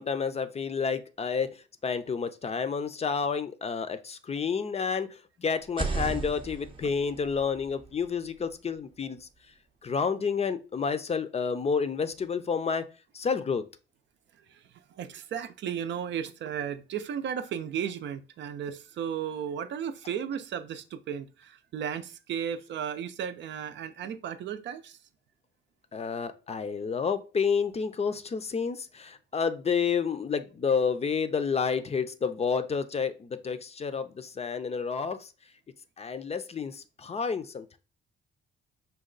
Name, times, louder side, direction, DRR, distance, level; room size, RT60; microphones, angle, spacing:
voice 1, 0.0-9.3 9.8-12.9 13.1-13.6 25.9-35.3 36.0-37.8, left 5 dB, 30° left, 0.5 m, -30 dB
sound 1, 5.6-9.4, right 3 dB, 25° right, 0.7 m, -37 dB
voice 2, 14.3-25.0, right 8 dB, 65° right, 0.5 m, -35 dB
5.2 x 2.3 x 3.8 m
cardioid pair, 90°, 20 cm